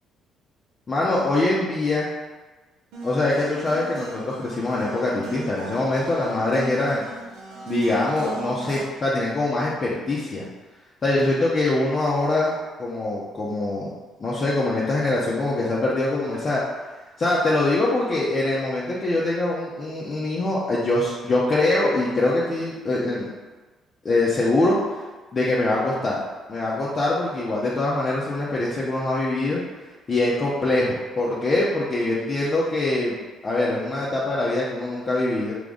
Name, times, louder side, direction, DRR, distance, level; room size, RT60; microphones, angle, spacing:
voice 1, 0.9-2.1 3.0-7.0 7.7-10.4 11.0-13.9 14.2-16.6 17.2-23.3 24.0-24.8 25.3-26.2 26.5-29.6 30.1-33.2 33.4-35.5, left 2 dB, 40° left, -7 dB, 0.8 m, -23 dB
sound 1, 2.9-8.8, right 2 dB, 80° right, 0.7 m, -36 dB
3.5 x 3.0 x 3.8 m, 1.3 s
hypercardioid pair, 55°, 0 cm